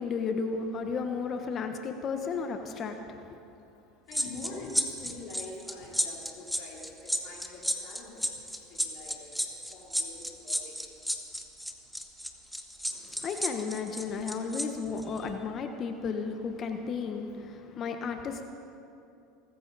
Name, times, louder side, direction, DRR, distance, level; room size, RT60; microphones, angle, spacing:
voice 1, 0.0-3.4 13.2-18.5, left 5 dB, 40° left, 6 dB, 1.2 m, -33 dB
voice 2, 4.1-8.2 8.8-9.4 9.7-10.7, left 3 dB, 60° left, -4 dB, 3.5 m, -45 dB
sound 1, 4.1-14.7 15.0-15.2, equal, ahead, 1.4 m, -32 dB
23.5 x 14.0 x 4.2 m, 2.7 s
supercardioid pair, 100°, 0 cm